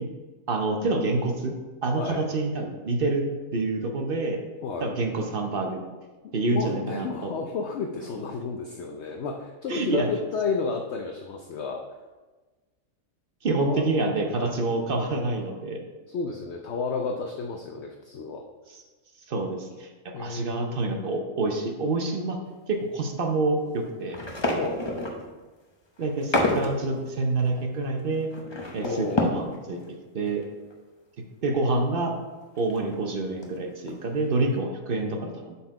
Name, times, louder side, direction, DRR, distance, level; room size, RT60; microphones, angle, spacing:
voice 1, 0.5-1.5 1.8-3.3 3.5-4.4 4.8-5.8 6.3-7.1 9.7-10.1 13.4-15.8 19.3-19.9 20.2-22.4 22.7-24.2 26.0-28.3 28.7-30.4 31.4-32.1 32.6-35.6, right 2 dB, 50° right, 3 dB, 0.8 m, -27 dB
voice 2, 2.0-2.3 4.6-4.9 6.5-11.8 13.6-13.9 14.4-14.5 16.1-18.4 20.1-20.9 24.5-24.8 28.8-29.6, left 4 dB, 65° left, 2 dB, 0.8 m, -32 dB
sound 1, 24.1-25.3 26.0-26.7 27.1-27.2 27.4-29.6 29.9-30.0 30.3-30.4 30.7-30.8 32.4-33.0 33.4-33.6 33.9-34.2, left 1 dB, 25° left, 0.7 m, -28 dB
7.6 x 4.3 x 4.7 m, 1.3 s
omnidirectional pair, 1.4 m